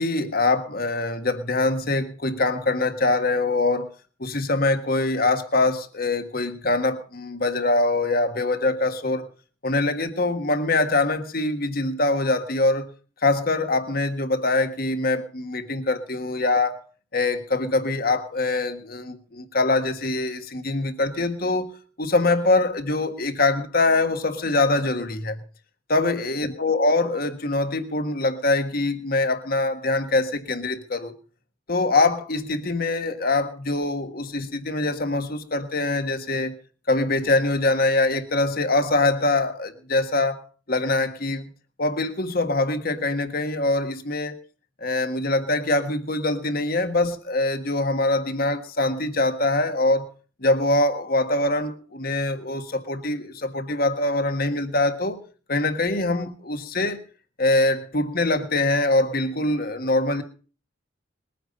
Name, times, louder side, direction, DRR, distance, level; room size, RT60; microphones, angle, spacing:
voice 1, 0.0-3.9 4.2-9.3 9.6-12.9 13.2-16.8 17.1-25.4 25.9-31.1 31.7-36.5 36.9-40.4 40.7-41.5 41.8-44.4 44.8-50.1 50.4-55.2 55.5-57.0 57.4-60.2, left 2 dB, 45° left, 8 dB, 1.5 m, -23 dB
21.0 x 9.3 x 5.3 m, 0.39 s
head